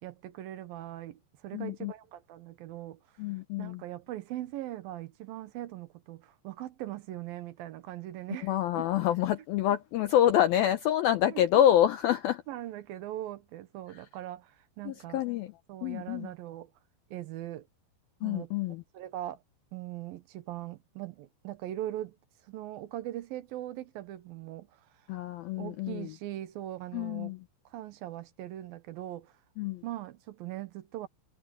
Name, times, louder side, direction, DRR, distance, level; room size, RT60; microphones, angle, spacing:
voice 1, 0.0-3.0 3.6-8.8 11.3-11.4 12.5-15.2 15.7-16.7 17.1-17.7 18.2-18.5 18.9-19.4 19.7-22.2 22.5-24.7 25.6-27.3 27.7-29.3 29.8-31.1, right 14 dB, 70° right, 2.4 m, -40 dB
voice 2, 1.5-1.9 3.2-3.8 8.4-12.4 13.9-14.0 14.9-15.5 15.8-16.3 18.2-18.8 25.1-26.1 26.9-27.4 29.6-29.8, left 11 dB, 90° left, 2.1 m, -27 dB
omnidirectional pair, 5.4 m